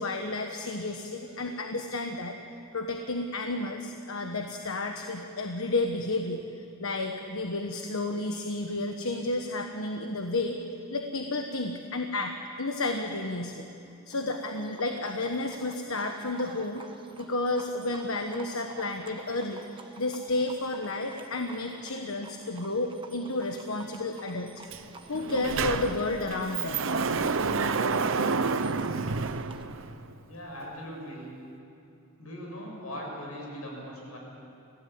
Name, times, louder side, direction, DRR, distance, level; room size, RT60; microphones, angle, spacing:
voice 1, 0.0-2.4 2.7-10.6 10.9-12.3 12.6-13.6 14.1-16.8 17.2-24.5 25.1-27.3, left 2 dB, 70° left, 4 dB, 1.3 m, -31 dB
Livestock farm animals working animals, 14.1-29.6, right 3 dB, 25° right, 1.4 m, -50 dB
Sliding door, 24.7-24.8 25.1-30.1, right 4 dB, 60° right, 0.9 m, -29 dB
voice 2, 30.2-31.3 32.2-34.2, equal, 90° left, -1 dB, 7.2 m, -40 dB
29.0 x 16.5 x 8.7 m, 2.7 s
head